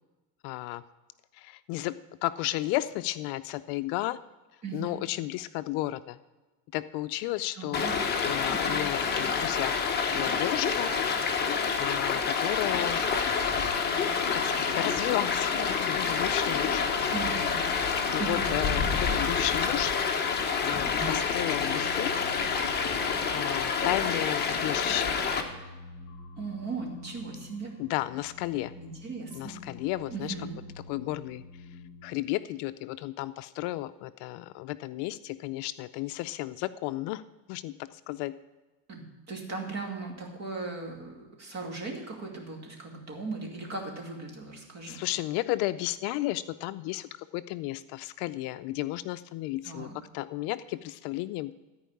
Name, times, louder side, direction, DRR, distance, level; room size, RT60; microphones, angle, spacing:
voice 1, 0.4-0.8 1.3-4.2 4.7-6.2 6.7-7.9 8.2-9.7 10.1-10.9 11.8-13.0 14.3-16.8 17.9-19.9 20.6-22.1 23.3-25.2 27.8-28.7 29.3-30.3 30.9-31.7 32.0-37.2 37.5-38.4 44.9-49.9 50.1-51.5, left 16 dB, 60° left, 12 dB, 0.5 m, -33 dB
voice 2, 4.6-5.0 7.5-8.0 8.5-8.8 17.1-17.4 18.2-18.6 26.4-27.7 28.8-29.6 30.1-30.6 38.9-45.0 49.6-49.9, right 4 dB, 35° right, 1 dB, 2.5 m, -38 dB
Stream, 7.7-25.4, left 5 dB, 20° left, 1.0 m, -28 dB
sound 1, 13.5-32.2, left 3 dB, 45° left, 2.9 m, -48 dB
14.0 x 4.8 x 8.4 m, 1.2 s
cardioid pair, 155°, 46 cm